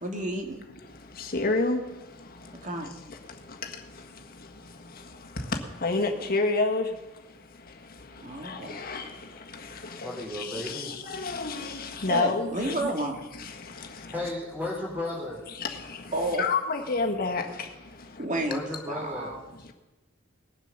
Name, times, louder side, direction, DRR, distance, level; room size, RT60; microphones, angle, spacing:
voice 1, 0.0-0.6 2.6-2.9 8.2-8.8 12.1-13.3 16.1-16.4 18.2-18.6 18.9-19.4, right 1 dB, 40° right, 2.2 m, -31 dB
voice 2, 1.2-1.8 5.8-6.9 8.4-9.1 10.0-12.8 15.6-15.7 16.4-17.4, left 3 dB, 50° left, 1.6 m, -28 dB
voice 3, 10.0-10.9 14.1-15.4 18.5-19.3, left 1 dB, 10° right, 3.2 m, -34 dB
19.5 x 7.6 x 6.7 m
head